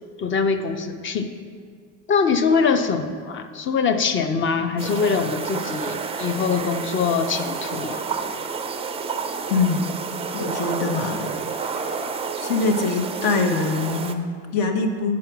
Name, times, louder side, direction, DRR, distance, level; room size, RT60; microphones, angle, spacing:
voice 1, 0.2-1.3 2.1-8.0, left 5 dB, 30° left, 8 dB, 0.6 m, -23 dB
sound 1, 4.8-14.1, right 5 dB, 15° right, 0.3 m, -30 dB
voice 2, 9.5-9.9 10.3-11.8 12.4-15.2, left 4 dB, 60° left, 4 dB, 1.2 m, -24 dB
7.6 x 4.9 x 5.9 m, 2.1 s
cardioid pair, 120°, 39 cm